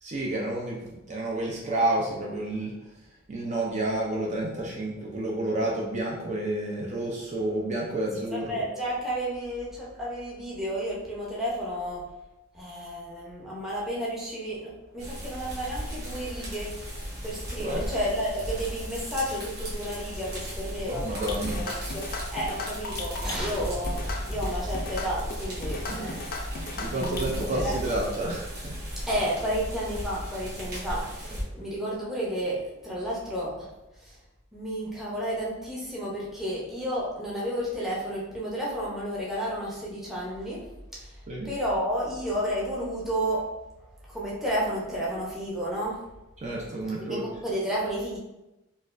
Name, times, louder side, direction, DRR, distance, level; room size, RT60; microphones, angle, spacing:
voice 1, 0.0-2.7 3.3-8.6 17.6-17.9 20.9-21.6 25.9-26.1 26.8-28.8 41.3-41.5 46.4-47.2, right 1 dB, 35° right, -3 dB, 0.5 m, -30 dB
voice 2, 8.3-12.1 12.5-16.8 17.2-26.2 26.6-28.0 29.1-33.7 34.0-34.2 34.5-41.2 41.4-43.6 44.1-46.1 47.1-48.2, equal, ahead, -7 dB, 0.8 m, -32 dB
sound 1, 15.0-31.4, equal, 55° right, 1.2 m, -35 dB
sound 2, 21.1-27.4, left 3 dB, 50° left, 0.4 m, -37 dB
3.9 x 2.4 x 2.5 m, 0.97 s
head